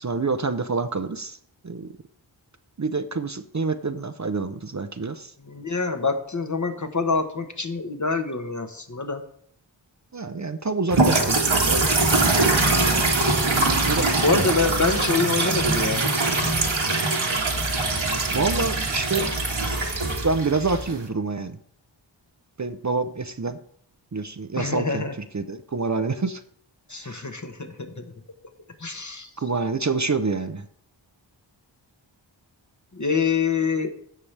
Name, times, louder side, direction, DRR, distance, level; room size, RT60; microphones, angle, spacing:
voice 1, 0.0-1.4 1.6-1.9 2.8-5.3 10.1-13.0 13.9-14.2 18.3-19.3 19.8-21.6 22.6-23.6 24.1-25.1 25.3-26.4 26.9-27.2 29.4-30.6, right 4 dB, 40° right, 10 dB, 0.6 m, -27 dB
voice 2, 5.4-9.2 14.2-16.0 24.6-25.1 26.9-28.0 28.8-29.3 32.9-33.9, left 4 dB, 40° left, 6 dB, 1.2 m, -26 dB
sound 1, 10.9-21.1, right 3 dB, 80° right, 1.7 m, -22 dB
16.0 x 5.8 x 3.3 m, 0.66 s
wide cardioid pair, 40°, 47 cm